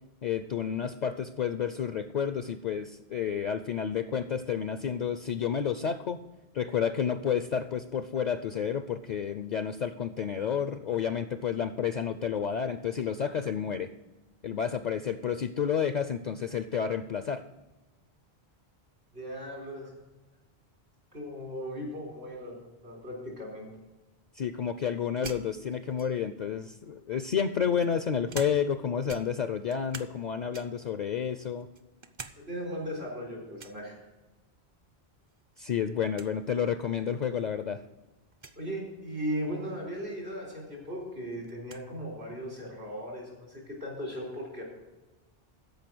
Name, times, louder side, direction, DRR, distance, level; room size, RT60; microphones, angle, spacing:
voice 1, 0.2-6.2 6.5-13.9 14.4-17.4 24.4-31.7 35.6-37.8, left 7 dB, 55° left, 10 dB, 0.5 m, -30 dB
voice 2, 19.1-19.9 21.1-22.6 22.8-23.7 32.4-34.0 38.5-44.6, equal, 80° right, -2 dB, 4.0 m, -37 dB
sound 1, 25.2-26.4 27.2-28.8 29.1-30.2 30.5-30.9 31.4-32.4 32.7-32.8 33.6-33.8 35.3-35.6 35.9-36.0 36.1-36.3 37.1-37.2 38.3-38.6 40.3-40.4 40.7-41.9, right 4 dB, 35° right, 0.5 m, -45 dB
13.5 x 5.3 x 6.1 m, 1.1 s
omnidirectional pair, 1.1 m